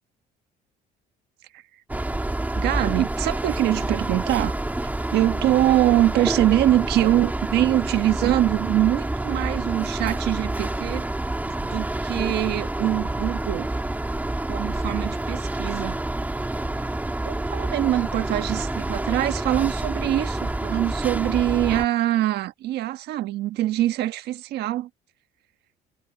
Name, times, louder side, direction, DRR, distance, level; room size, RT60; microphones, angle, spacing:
sound 1, 1.9-21.9, right 2 dB, 10° right, 2.5 m, -28 dB
voice 1, 2.5-4.6 5.1-11.0 11.5-13.7 14.5-16.0 17.2-24.9, right 14 dB, 75° right, 1.4 m, -23 dB
cardioid pair, 110°, 17 cm